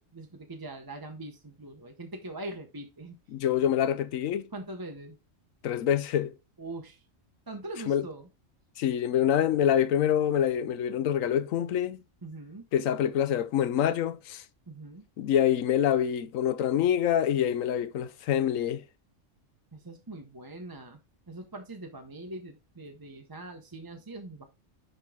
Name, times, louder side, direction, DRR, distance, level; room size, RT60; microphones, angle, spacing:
voice 1, 0.0-3.1 4.5-5.2 6.6-7.0 7.5-8.3 12.2-12.7 14.7-15.1 19.7-21.0 21.3-24.4, right 2 dB, 20° right, 0.7 m, -42 dB
voice 2, 3.3-4.4 5.6-6.3 7.9-8.0 8.8-12.0 12.7-14.4 15.2-18.8, left 10 dB, 85° left, 1.1 m, -26 dB
10.5 x 3.8 x 3.6 m
omnidirectional pair, 1.3 m